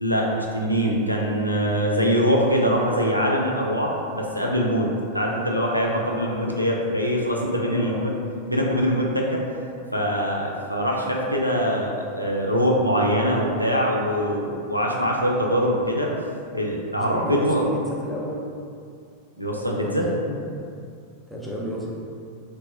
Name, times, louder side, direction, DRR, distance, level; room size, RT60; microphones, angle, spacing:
voice 1, 0.0-4.9 5.1-8.1 8.5-9.4 9.9-16.1 16.5-17.7 19.4-20.1, equal, 90° left, -2 dB, 0.3 m, -23 dB
voice 2, 7.7-8.0 16.9-18.4 19.9-20.4 21.3-21.9, equal, ahead, -5 dB, 0.5 m, -32 dB
2.9 x 2.2 x 2.4 m, 2.4 s
figure-of-eight pair, 90°, 0 cm